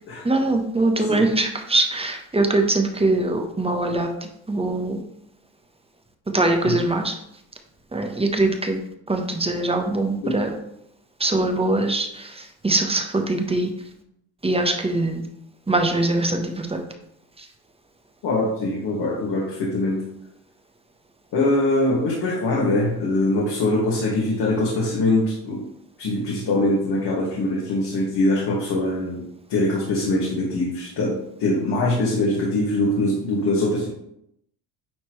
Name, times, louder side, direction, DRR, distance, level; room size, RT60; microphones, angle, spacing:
voice 1, 0.2-4.1 4.5-5.0 6.3-7.1 7.9-8.8 9.1-10.5 11.2-13.7 14.4-15.2 15.7-16.8 17.4-17.5, right 2 dB, 15° right, 4 dB, 1.2 m, -22 dB
voice 2, 18.2-20.0 21.3-25.6 26.0-29.2 29.5-33.9, left 2 dB, 65° left, -5 dB, 2.3 m, -22 dB
9.7 x 4.3 x 3.2 m, 0.78 s
supercardioid pair, 85°, 41 cm